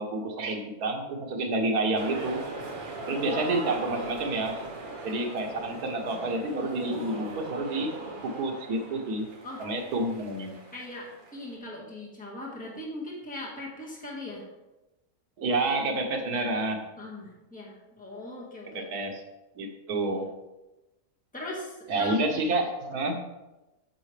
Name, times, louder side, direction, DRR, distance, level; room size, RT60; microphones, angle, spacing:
voice 1, 0.0-2.4 3.1-4.6 5.0-7.9 8.2-9.3 9.6-10.6 15.4-16.8 18.7-19.2 19.6-20.3 21.9-23.2, right 2 dB, 80° right, 3 dB, 1.5 m, -29 dB
sound 1, 2.0-11.5, right 2 dB, 40° right, 1.1 m, -40 dB
voice 2, 3.2-4.2 9.4-9.6 10.7-14.5 17.0-18.9 21.3-22.4, left 2 dB, 5° left, -4 dB, 1.6 m, -39 dB
8.6 x 6.4 x 3.3 m, 1.0 s
omnidirectional pair, 1.6 m